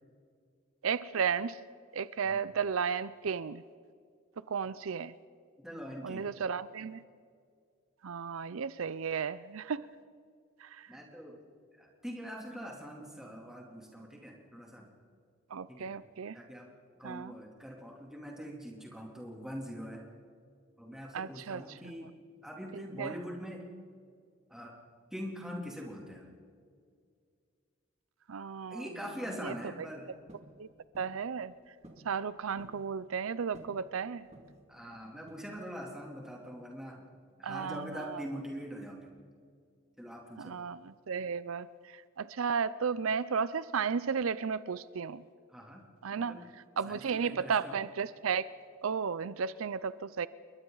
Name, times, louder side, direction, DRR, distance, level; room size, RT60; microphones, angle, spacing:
voice 1, 0.8-1.6 1.9-3.6 4.5-5.1 6.0-7.0 8.0-9.8 10.6-10.9 15.5-16.4 17.0-17.3 21.1-21.9 22.7-23.1 28.3-28.9 29.4-29.5 30.6-30.7 31.0-31.5 32.0-34.3 37.4-38.2 40.4-45.2 46.0-46.4 46.8-48.5 48.8-50.3, right 6 dB, 85° right, 17 dB, 0.5 m, -34 dB
voice 2, 5.6-6.3 10.9-11.4 11.8-14.9 15.7-16.0 16.3-16.7 17.0-20.0 20.8-22.1 22.4-23.7 24.5-24.7 25.1-26.3 28.7-30.1 34.7-37.1 37.4-39.1 40.0-40.6 45.5-46.4 46.8-47.8, equal, 5° right, -2 dB, 2.9 m, -43 dB
sound 1, 30.3-30.5 30.9-31.2 31.8-32.1 32.4-32.8 33.5-33.8 34.3-34.7 35.3-35.7, right 1 dB, 30° right, 2.3 m, -53 dB
29.5 x 22.0 x 4.0 m, 2.2 s
head